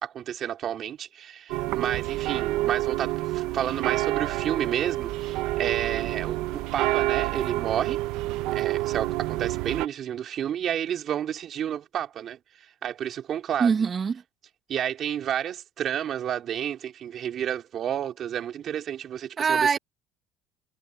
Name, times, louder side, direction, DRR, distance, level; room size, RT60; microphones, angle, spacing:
voice 1, 0.0-8.0 8.5-13.7 14.7-19.8, right 10 dB, 50° right, 2.9 m, -31 dB
sound 1, 1.5-9.9, right 17 dB, 75° right, 1.0 m, -28 dB
voice 2, 13.6-14.2 19.4-19.8, right 6 dB, 35° right, 2.1 m, -23 dB
supercardioid pair, 105°, 0 cm